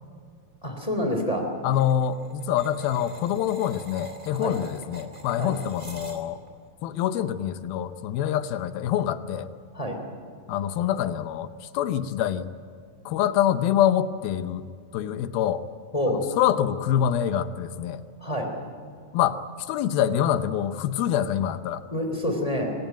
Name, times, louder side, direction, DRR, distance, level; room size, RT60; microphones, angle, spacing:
voice 1, 0.6-1.5 4.4-4.6 5.4-5.5 9.7-10.0 15.9-16.2 18.2-18.5 21.9-22.7, equal, 10° left, 4 dB, 2.4 m, -27 dB
voice 2, 1.6-6.4 6.8-9.5 10.5-12.5 13.1-14.7 14.9-15.6 16.1-18.0 19.1-19.4 19.7-21.8, left 10 dB, 75° left, 11 dB, 2.4 m, -25 dB
sound 1, 1.7-6.5, right 2 dB, 20° right, 1.1 m, -45 dB
24.0 x 18.5 x 9.2 m, 2.2 s
omnidirectional pair, 4.8 m